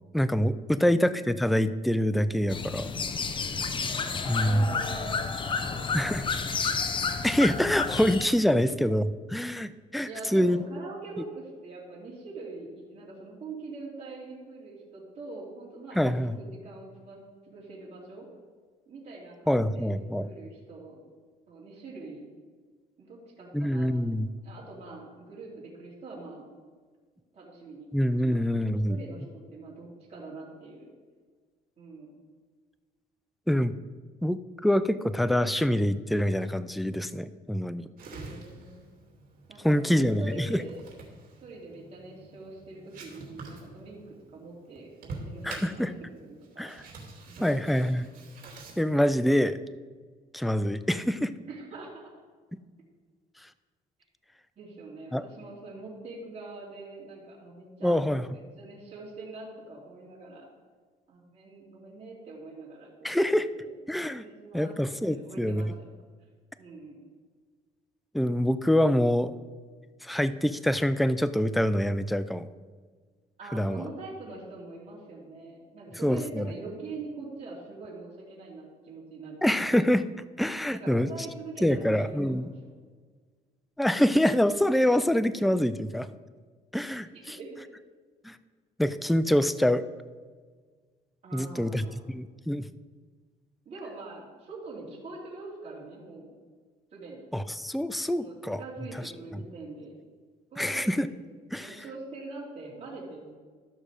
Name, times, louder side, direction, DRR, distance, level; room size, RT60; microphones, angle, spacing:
voice 1, 0.1-2.9 4.3-4.7 5.9-6.2 7.2-10.6 16.0-16.4 19.5-20.3 23.5-24.3 27.9-29.0 33.5-33.8 34.2-37.9 39.6-40.6 45.4-45.9 46.6-46.7 47.4-48.1 48.8-49.6 50.3-51.3 55.1-55.2 57.8-58.2 63.0-63.5 63.9-64.2 64.5-65.7 68.1-69.3 70.0-72.5 73.5-73.8 76.0-76.5 79.4-80.1 80.4-81.1 81.6-82.5 83.8-86.1 86.7-87.4 88.2-88.4 88.8-89.8 91.3-92.7 97.3-98.6 100.6-101.1 101.5-101.8, equal, ahead, 13 dB, 0.4 m, -25 dB
voice 2, 0.7-1.1 3.9-5.2 5.6-6.4 10.0-17.2 17.5-18.3 18.9-21.0 21.5-22.2 23.0-24.1 24.4-26.4 27.3-27.9 28.2-30.9 31.8-32.1 38.2-39.0 39.5-40.8 41.4-46.9 47.3-47.5 51.5-52.1 54.6-58.0 58.3-60.4 61.1-63.2 63.5-63.7 64.2-64.7 65.1-65.9 66.6-67.0 73.4-79.4 80.7-82.7 87.1-87.6 91.2-92.1 93.6-96.3 96.9-97.3 98.0-99.9 100.5-101.2 101.5-103.4, right 3 dB, 40° right, -5 dB, 2.9 m, -44 dB
sound 1, 2.5-8.3, left 5 dB, 30° left, 0.7 m, -31 dB
sound 2, 38.0-48.7, right 3 dB, 55° right, 2.7 m, -47 dB
13.5 x 6.3 x 5.0 m, 1.5 s
cardioid pair, 110°, 17 cm